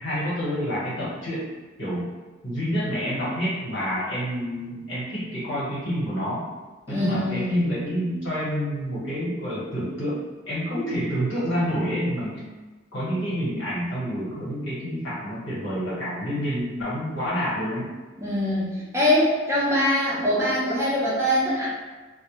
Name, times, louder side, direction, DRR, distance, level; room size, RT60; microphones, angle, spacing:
voice 1, 0.0-1.5 1.8-2.1 2.4-6.4 6.9-12.4 12.9-17.9, equal, 70° left, -9 dB, 1.1 m, -28 dB
voice 2, 6.9-7.9 18.2-21.7, left 1 dB, 15° right, -8 dB, 0.6 m, -23 dB
2.1 x 2.1 x 3.0 m, 1.3 s
head